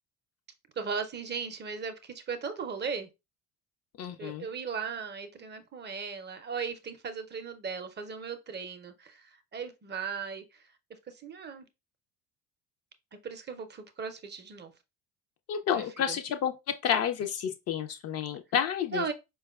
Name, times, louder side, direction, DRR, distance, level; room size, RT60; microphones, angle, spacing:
voice 1, 0.8-3.1 4.2-10.6 11.1-11.6 13.2-14.7 15.7-16.2 18.9-19.1, right 5 dB, 25° right, 0.5 m, -37 dB
voice 2, 4.0-4.5 15.5-16.5 16.8-19.1, left 8 dB, 40° left, 0.4 m, -30 dB
4.5 x 2.3 x 2.3 m
hypercardioid pair, 60°, 40 cm